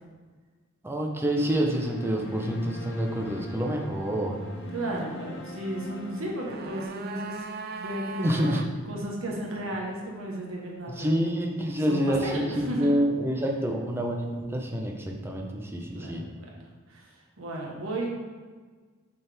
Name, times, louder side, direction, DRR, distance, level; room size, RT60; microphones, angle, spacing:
voice 1, 0.8-4.4 8.2-8.6 11.0-16.3, equal, 10° right, 1 dB, 0.7 m, -27 dB
sound 1, 1.3-6.8, left 1 dB, 65° left, 0.9 m, -41 dB
voice 2, 4.7-11.2 11.8-12.9 15.9-16.3 16.9-17.1 17.4-18.1, right 1 dB, 85° right, -2 dB, 1.3 m, -34 dB
sound 2, 6.1-8.7 9.0-9.1, right 5 dB, 50° right, 0.4 m, -39 dB
7.2 x 4.4 x 3.5 m, 1.4 s
head